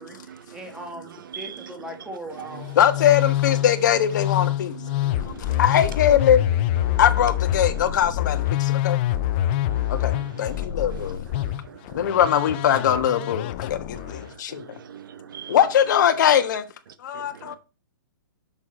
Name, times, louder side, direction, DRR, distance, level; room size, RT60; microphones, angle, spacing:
voice 1, 0.0-2.8, equal, 5° right, 1.4 m, -39 dB
Musical instrument, 2.5-14.3, left 13 dB, 30° left, 0.5 m, -26 dB
voice 2, 2.8-4.7 5.3-6.4 7.0-9.0 9.9-11.2 11.9-14.8 15.5-16.6 17.0-17.6, left 9 dB, 55° left, 1.3 m, -21 dB
voice 3, 5.0-5.6 6.9-7.0 9.5-10.2 10.5-10.7 11.7-11.8 14.5-15.5 17.1-17.6, right 8 dB, 65° right, 0.9 m, -41 dB
7.1 x 6.4 x 4.3 m
hypercardioid pair, 155°, 12 cm